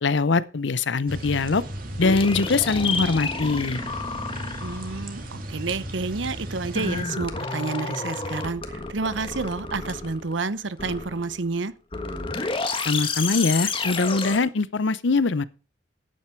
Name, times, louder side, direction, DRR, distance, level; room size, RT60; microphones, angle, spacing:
voice 1, 0.0-1.6 2.0-3.8 12.9-15.5, left 3 dB, 80° left, 0.7 m, -22 dB
sound 1, 1.1-7.0, right 1 dB, 50° right, 2.4 m, -35 dB
sound 2, 2.0-5.0 6.8-10.4 10.8-11.5 11.9-14.4, left 4 dB, 30° left, 1.5 m, -30 dB
voice 2, 4.6-11.7, right 3 dB, 85° right, 0.9 m, -30 dB
12.0 x 9.3 x 4.5 m
head